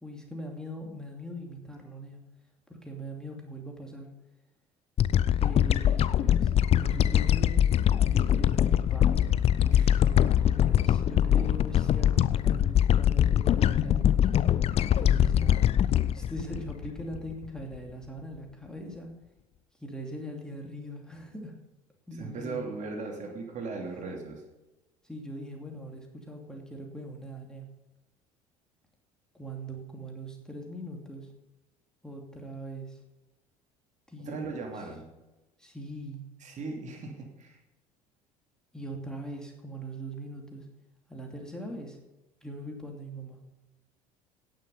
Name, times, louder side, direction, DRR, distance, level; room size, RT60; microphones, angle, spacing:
voice 1, 0.0-2.2 2.7-4.1 5.4-14.0 14.8-19.1 19.8-21.5 22.1-22.6 25.0-27.7 29.3-31.3 32.0-33.0 34.1-34.7 35.6-36.3 38.7-40.7 41.1-42.0 42.4-43.4, right 1 dB, 5° left, 1 dB, 2.6 m, -41 dB
sound 1, 5.0-17.5, left 10 dB, 35° left, 0.5 m, -23 dB
sound 2, 6.8-13.0, right 1 dB, 20° right, 3.2 m, -48 dB
voice 2, 22.2-24.4 34.2-35.1 36.4-37.6, right 4 dB, 40° right, 2 dB, 2.8 m, -38 dB
17.5 x 6.5 x 5.4 m, 1.1 s
figure-of-eight pair, 60°, 19 cm